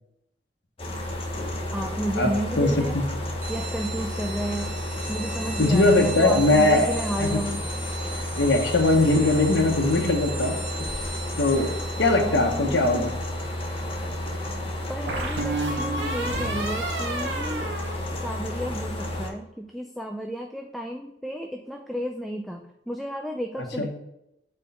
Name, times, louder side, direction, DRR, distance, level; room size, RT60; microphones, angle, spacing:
sound 1, 0.8-19.3, left 1 dB, 30° left, 0.9 m, -31 dB
voice 1, 1.7-3.1 3.5-4.8 5.1-7.6 12.2-12.9 14.9-17.7 18.2-23.9, equal, ahead, 3 dB, 0.3 m, -32 dB
voice 2, 2.6-3.0 5.6-6.9 7.2-7.4 8.4-10.6 11.4-13.1 23.8-23.9, left 2 dB, 70° left, 2 dB, 1.0 m, -20 dB
sound 2, 3.4-15.5, right 4 dB, 40° right, 1.5 m, -39 dB
sound 3, 12.3-13.2 15.1-18.7, right 2 dB, 80° right, 0.9 m, -31 dB
4.5 x 4.5 x 5.4 m, 0.84 s
head